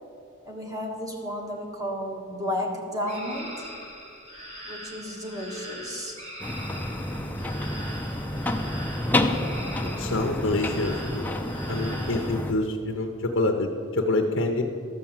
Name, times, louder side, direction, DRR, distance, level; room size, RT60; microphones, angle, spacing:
voice 1, 0.4-3.6 4.7-6.2, equal, 20° right, 0 dB, 1.5 m, -32 dB
sound 1, 3.1-12.3, equal, 35° right, 2.6 m, -41 dB
sound 2, 6.4-12.5, left 1 dB, 10° left, 0.5 m, -29 dB
voice 2, 9.8-11.3 11.7-14.6, left 2 dB, 65° left, 4 dB, 0.7 m, -27 dB
13.5 x 6.0 x 7.2 m, 2.6 s
head